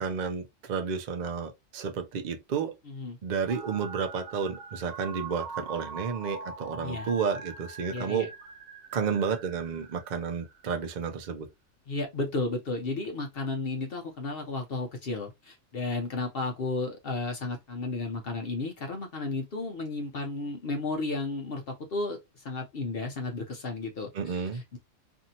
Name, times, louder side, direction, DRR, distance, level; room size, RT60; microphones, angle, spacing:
voice 1, 0.0-2.7 3.2-8.3 8.9-11.5 24.1-24.6, right 6 dB, 60° right, 0.4 m, -31 dB
voice 2, 2.9-3.2 6.8-7.1 7.9-8.3 11.9-24.8, left 3 dB, 55° left, 0.8 m, -33 dB
sound 1, 3.5-10.7, right 4 dB, 80° right, 1.0 m, -42 dB
2.7 x 2.6 x 2.7 m
omnidirectional pair, 1.4 m